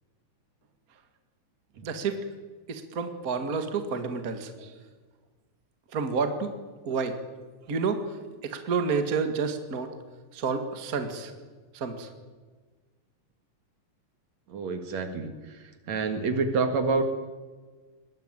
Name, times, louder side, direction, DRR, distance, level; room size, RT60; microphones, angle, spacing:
voice 1, 1.8-2.2 2.7-4.8 5.9-6.5 6.8-7.2 7.7-8.2 8.4-9.9 10.3-11.3 11.7-12.1, right 5 dB, 30° right, 7 dB, 1.9 m, -29 dB
voice 2, 14.5-15.3 15.9-17.0, right 4 dB, 60° right, 7 dB, 2.9 m, -27 dB
22.0 x 20.0 x 9.0 m, 1.4 s
omnidirectional pair, 3.7 m